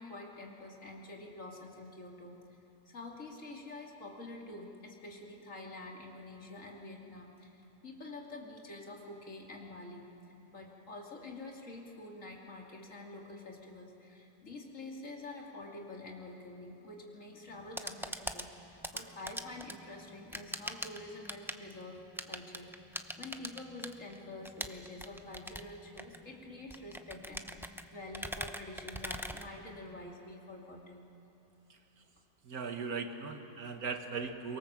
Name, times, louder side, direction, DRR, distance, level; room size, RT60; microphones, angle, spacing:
voice 1, 0.0-2.3 2.9-10.1 10.5-22.0 22.3-31.1, left 2 dB, 60° left, -1 dB, 2.9 m, -47 dB
sound 1, 17.5-30.1, equal, 5° right, 0.5 m, -43 dB
voice 2, 31.7-32.0 32.4-34.6, right 5 dB, 85° right, 6 dB, 2.0 m, -39 dB
24.5 x 22.5 x 7.5 m, 3.0 s
omnidirectional pair, 1.5 m